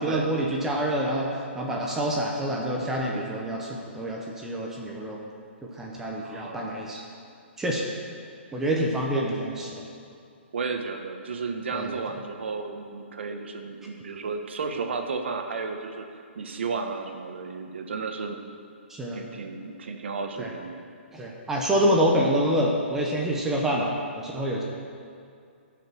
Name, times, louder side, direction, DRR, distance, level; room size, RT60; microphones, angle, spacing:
voice 1, 0.0-5.2 5.7-7.0 7.6-7.8 8.5-9.8 11.7-12.0 18.9-19.2 20.4-20.5 21.1-24.6, right 1 dB, 5° right, -2 dB, 0.7 m, -27 dB
voice 2, 6.2-6.9 10.5-18.4 19.1-20.8, right 4 dB, 65° right, 5 dB, 1.2 m, -33 dB
13.5 x 5.8 x 6.2 m, 2.4 s
hypercardioid pair, 170°, 7 cm